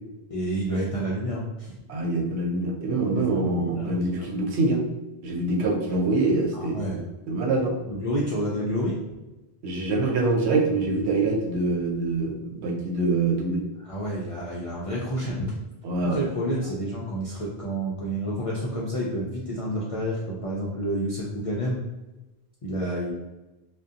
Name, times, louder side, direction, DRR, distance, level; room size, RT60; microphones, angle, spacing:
voice 1, 0.3-1.7 3.3-3.9 4.2-4.3 6.5-7.0 7.9-9.0 13.8-15.5 16.0-21.8 22.6-23.1, equal, 60° left, -5 dB, 0.3 m, -29 dB
voice 2, 1.9-4.8 5.2-6.8 7.3-7.8 9.6-13.6 15.8-16.3, right 2 dB, 85° right, 2 dB, 0.9 m, -25 dB
2.6 x 2.1 x 2.4 m, 1.0 s
omnidirectional pair, 1.1 m